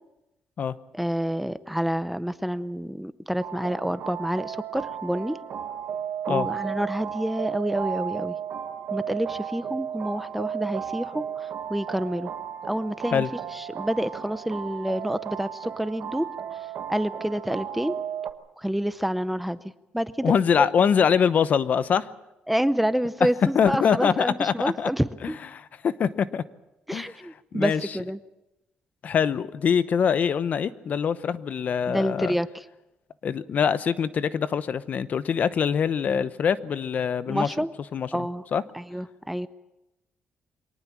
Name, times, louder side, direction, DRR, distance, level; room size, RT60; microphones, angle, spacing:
voice 1, 0.9-5.4 6.3-8.4 8.9-12.3 12.6-13.2 13.5-16.6 16.9-18.0 18.6-19.6 19.9-20.7 22.5-25.4 26.9-28.2 31.9-32.6 37.3-37.7 38.1-38.4 38.7-39.5, equal, 5° right, 14 dB, 0.7 m, -28 dB
sound 1, 3.4-18.3, right 8 dB, 65° right, 1.5 m, -34 dB
voice 2, 20.2-22.1 23.5-24.9 25.2-26.4 26.9-27.1 27.5-27.8 29.0-32.4 33.2-37.5 37.9-38.1 38.5-38.6, left 7 dB, 50° left, 14 dB, 0.9 m, -24 dB
24.0 x 18.5 x 7.4 m, 0.95 s
cardioid pair, 115°, 3 cm